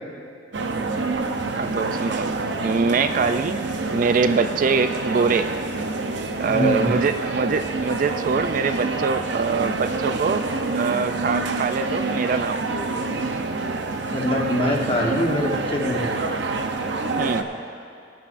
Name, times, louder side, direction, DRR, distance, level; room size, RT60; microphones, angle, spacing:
sound 1, 0.5-17.4, right 3 dB, 70° right, 0.7 m, -27 dB
voice 1, 1.6-5.5 6.4-10.4 10.7-12.7 17.2-17.5, right 5 dB, 45° right, 10 dB, 0.3 m, -23 dB
voice 2, 6.5-6.9 14.1-16.1, left 1 dB, 30° left, 0 dB, 1.2 m, -24 dB
21.0 x 9.8 x 2.6 m, 2.6 s
head